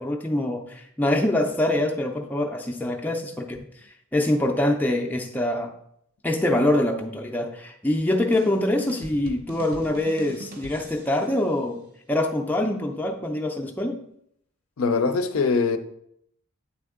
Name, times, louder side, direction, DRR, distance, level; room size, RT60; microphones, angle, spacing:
voice 1, 0.0-3.8 4.1-5.7 6.2-11.8 12.1-14.0, left 1 dB, 10° left, 0.4 m, -24 dB
sound 1, 7.9-11.4, right 2 dB, 40° right, 0.7 m, -42 dB
voice 2, 14.8-15.8, left 4 dB, 70° left, 0.5 m, -22 dB
8.3 x 3.5 x 3.6 m
head